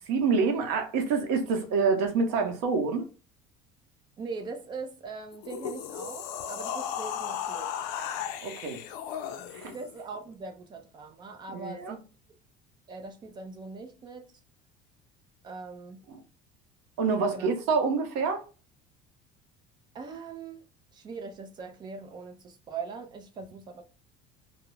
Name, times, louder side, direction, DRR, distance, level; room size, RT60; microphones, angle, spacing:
voice 1, 0.1-3.1 8.1-8.8 9.5-9.7 11.5-12.0 16.1-16.2 17.0-18.4, right 4 dB, 80° right, 0.8 m, -27 dB
voice 2, 4.2-7.8 9.7-12.0 12.9-14.3 15.4-16.0 17.3-17.5 19.9-20.7 20.9-23.8, right 4 dB, 25° right, 0.4 m, -41 dB
sound 1, 5.3-9.9, left 9 dB, 75° left, 0.4 m, -35 dB
2.3 x 2.0 x 3.1 m
cardioid pair, 160°, 18 cm